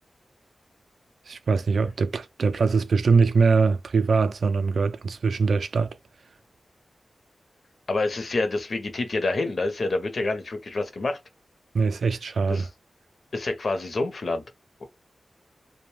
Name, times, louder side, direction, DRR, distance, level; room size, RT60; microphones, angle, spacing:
voice 1, 1.3-5.9 11.7-12.7, right 4 dB, 75° right, 0.3 m, -22 dB
voice 2, 7.9-11.2 12.5-12.7 13.3-14.4, left 2 dB, 55° left, 0.7 m, -27 dB
2.5 x 2.1 x 3.1 m
wide cardioid pair, 125°, 0 cm